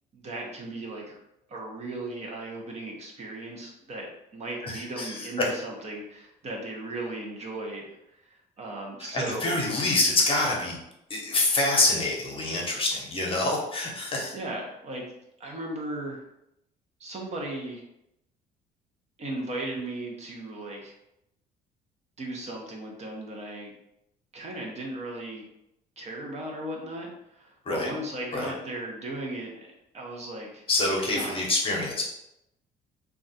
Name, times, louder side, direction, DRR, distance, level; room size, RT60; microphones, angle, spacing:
voice 1, 0.1-1.1 1.5-9.6 14.3-15.0 15.4-16.2 17.0-17.8 19.2-20.9 22.2-23.7 24.3-25.4 26.0-30.6 31.1-31.5, right 2 dB, 40° right, -1 dB, 0.7 m, -36 dB
voice 2, 4.6-5.5 9.0-10.8 11.1-14.3 27.7-27.9 28.3-28.5 30.7-32.0, left 2 dB, 35° left, -1 dB, 0.8 m, -26 dB
2.3 x 2.3 x 4.0 m, 0.84 s
cardioid pair, 110°, 17 cm